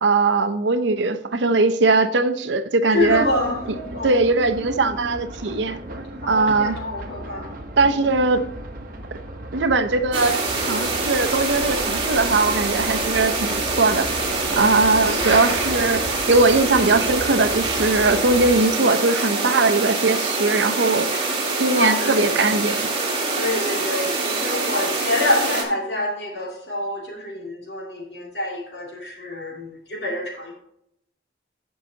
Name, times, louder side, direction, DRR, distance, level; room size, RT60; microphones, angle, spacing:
voice 1, 0.0-3.2 4.0-5.8 6.3-6.7 7.8-8.4 9.5-14.1 14.5-21.3 21.6-22.9, right 3 dB, 75° right, 10 dB, 0.7 m, -20 dB
voice 2, 2.9-3.6 3.9-4.2 6.2-7.5 7.8-8.0 15.0-15.4 21.7-22.3 23.3-30.5, left 2 dB, 65° left, -2 dB, 2.7 m, -27 dB
sound 1, 2.9-18.6, right 1 dB, 50° right, 1.1 m, -36 dB
sound 2, 10.1-25.6, right 3 dB, 25° right, 2.0 m, -25 dB
14.0 x 5.6 x 2.8 m, 0.73 s
head